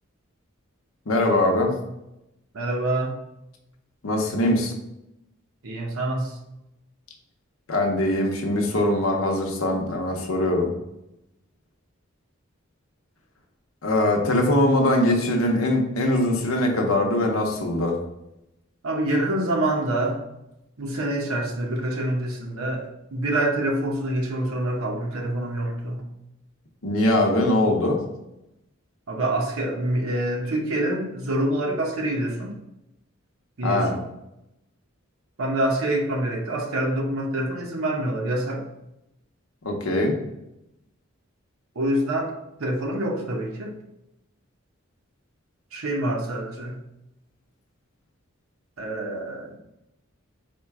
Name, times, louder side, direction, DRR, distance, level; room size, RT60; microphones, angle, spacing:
voice 1, 1.1-1.7 4.0-4.7 7.7-10.7 13.8-18.0 26.8-28.0 33.6-33.9 39.6-40.2, left 1 dB, 80° left, 2 dB, 0.8 m, -22 dB
voice 2, 2.5-3.1 5.6-6.4 18.8-20.2 20.8-22.8 23.1-26.0 29.1-32.6 33.6-34.0 35.4-38.7 41.8-42.3 42.6-43.8 45.7-46.8 48.8-49.6, right 1 dB, 80° right, 1 dB, 0.8 m, -26 dB
4.3 x 2.2 x 4.6 m, 0.88 s
head